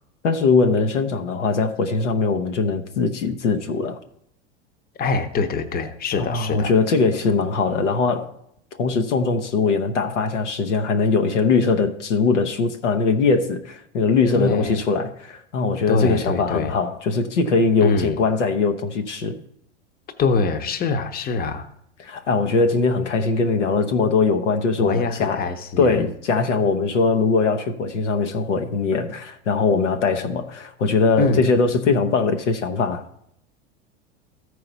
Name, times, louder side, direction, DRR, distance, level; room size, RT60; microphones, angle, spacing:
voice 1, 0.2-4.0 6.3-8.3 8.8-19.4 22.0-25.4 25.8-33.0, left 4 dB, 85° left, 0.9 m, -21 dB
voice 2, 5.0-6.7 14.3-14.8 15.9-16.8 17.8-18.2 20.2-21.7 24.8-26.1 31.2-31.5, left 4 dB, 25° left, 0.8 m, -24 dB
13.5 x 4.7 x 4.0 m
hypercardioid pair, 95°, 35 cm